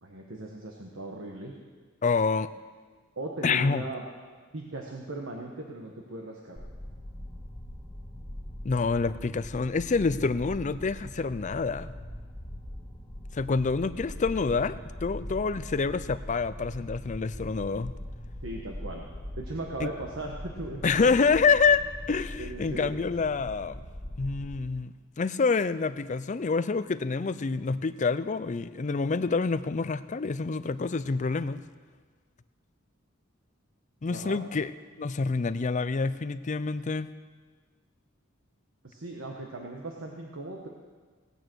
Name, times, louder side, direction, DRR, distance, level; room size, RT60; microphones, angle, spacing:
voice 1, 0.0-1.5 3.2-4.0 4.5-6.6 18.4-19.1 19.4-21.4 22.4-22.9 34.1-34.4 38.8-40.7, right 2 dB, 75° right, 0 dB, 1.3 m, -38 dB
voice 2, 2.0-2.5 3.4-3.8 8.6-11.9 13.3-17.9 19.8-19.9 20.8-23.8 24.2-31.6 34.0-34.7 35.0-37.1, left 4 dB, 40° left, 13 dB, 0.5 m, -27 dB
sound 1, 6.6-24.5, left 1 dB, 10° left, 1.6 m, -41 dB
17.5 x 9.2 x 6.2 m, 1.5 s
head